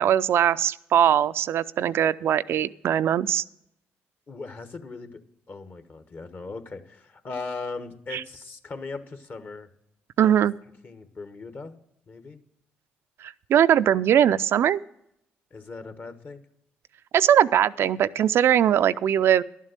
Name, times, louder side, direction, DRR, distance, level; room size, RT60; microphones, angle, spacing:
voice 1, 0.0-3.4 8.1-8.2 10.2-10.5 13.2-14.8 17.1-19.4, right 10 dB, 65° right, 13 dB, 0.3 m, -21 dB
voice 2, 4.3-5.2 5.5-9.7 10.2-10.4 10.8-11.7 12.1-12.4 15.5-16.4, left 3 dB, 45° left, 9 dB, 1.3 m, -38 dB
11.5 x 7.4 x 6.5 m, 0.77 s
supercardioid pair, 55°, 5 cm